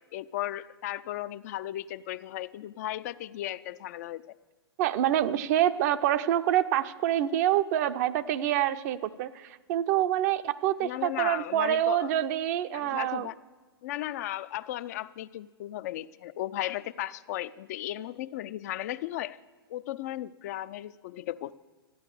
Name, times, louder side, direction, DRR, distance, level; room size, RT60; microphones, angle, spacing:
voice 1, 0.1-4.2 10.8-12.1 12.7-13.3 13.8-19.4 19.7-21.5, left 14 dB, 40° left, 14 dB, 0.4 m, -35 dB
voice 2, 4.8-13.3, right 12 dB, 40° right, 11 dB, 0.6 m, -26 dB
13.5 x 9.5 x 6.8 m, 1.3 s
figure-of-eight pair, 110°, 13 cm